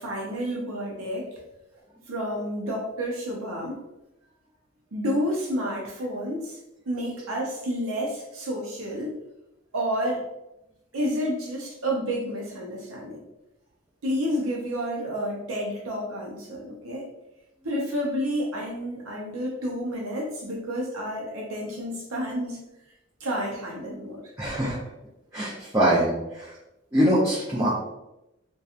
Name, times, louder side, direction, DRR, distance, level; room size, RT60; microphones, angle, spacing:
voice 1, 0.0-1.4 2.1-3.8 4.9-6.6 6.9-9.2 9.7-10.2 10.9-13.2 14.0-17.1 17.6-22.6 23.2-24.3, equal, 85° right, -2 dB, 0.6 m, -30 dB
voice 2, 24.4-24.8 25.3-26.5 26.9-27.8, equal, 15° right, -9 dB, 0.5 m, -23 dB
2.8 x 2.2 x 2.4 m, 0.91 s
head